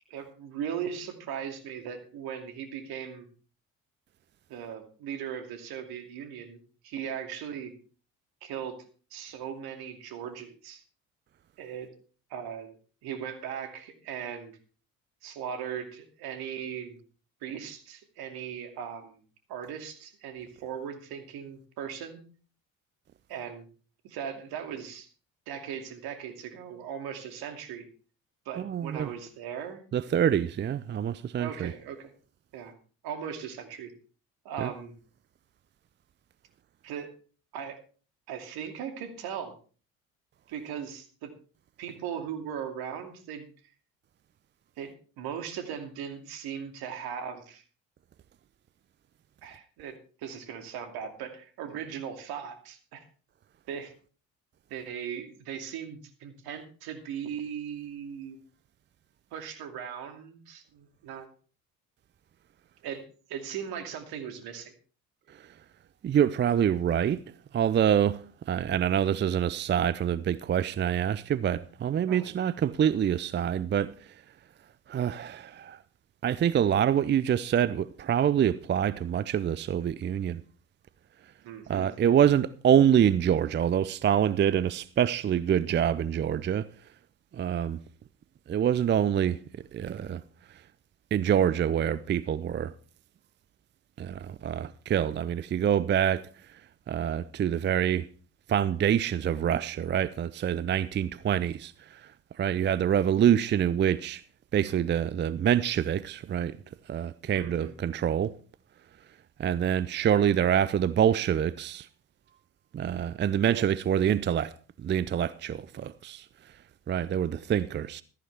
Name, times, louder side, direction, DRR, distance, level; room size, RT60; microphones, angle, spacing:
voice 1, 0.1-3.3 4.5-7.7 8.4-8.8 9.1-10.8 11.6-11.9 12.3-12.7 13.0-14.6 15.2-17.0 17.4-19.2 19.5-22.2 23.3-23.7 24.0-25.1 25.5-27.9 28.5-29.8 31.4-32.1 32.5-32.7 33.0-33.9 34.4-34.9 36.8-37.1 37.5-37.8 38.3-39.5 40.5-41.3 41.8-43.5 44.8-47.6 49.4-53.0 53.7-53.9 54.7-58.4 59.3-61.3 62.8-63.0 63.3-64.7 72.1-72.5 81.4-81.9 107.2-107.7 113.5-113.6, right 8 dB, 60° right, 2.6 m, -38 dB
voice 2, 28.6-29.1 29.9-31.7 34.6-34.7 65.4-65.5 66.0-67.2 67.5-73.9 74.9-75.8 76.2-80.4 81.7-86.7 87.3-87.8 88.5-89.4 89.7-90.2 91.1-92.7 94.0-96.3 96.9-98.1 98.5-102.1 102.4-104.2 104.5-106.6 106.9-108.3 109.4-111.9 112.7-114.5 114.8-116.3 116.9-118.0, right 9 dB, 25° right, 0.5 m, -26 dB
15.0 x 14.0 x 3.5 m
hypercardioid pair, 55°, 41 cm